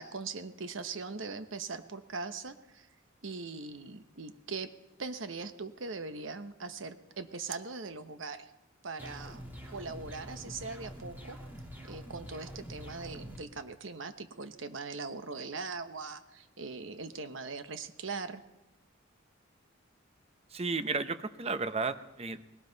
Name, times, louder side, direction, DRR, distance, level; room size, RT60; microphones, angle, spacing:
voice 1, 0.0-2.9 3.2-4.7 5.0-8.5 8.8-9.4 9.7-11.4 11.9-18.4, right 4 dB, 70° right, 9 dB, 1.1 m, -40 dB
sound 1, 9.0-13.4, equal, 10° right, 3.2 m, -45 dB
voice 2, 20.5-22.4, right 4 dB, 30° right, 10 dB, 0.8 m, -33 dB
20.0 x 18.0 x 4.0 m, 1.0 s
head